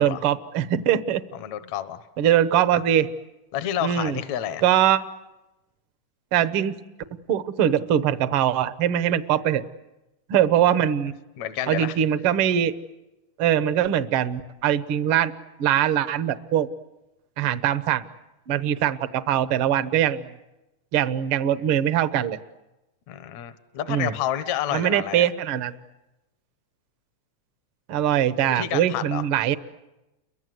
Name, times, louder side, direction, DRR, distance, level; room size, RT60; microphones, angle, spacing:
voice 1, 0.0-1.2 2.2-3.1 3.8-4.2 4.6-5.1 6.3-6.7 7.3-9.6 10.3-11.1 11.7-12.7 13.4-15.3 15.6-16.7 17.4-18.0 18.5-20.3 20.9-22.4 23.9-24.1 24.7-25.7 27.9-29.6, right 10 dB, 60° right, 13 dB, 1.5 m, -22 dB
voice 2, 1.3-2.0 3.5-4.6 11.4-12.0 23.1-25.2 28.5-29.2, left 11 dB, 65° left, 11 dB, 2.3 m, -29 dB
30.0 x 23.5 x 7.9 m, 0.98 s
omnidirectional pair, 3.6 m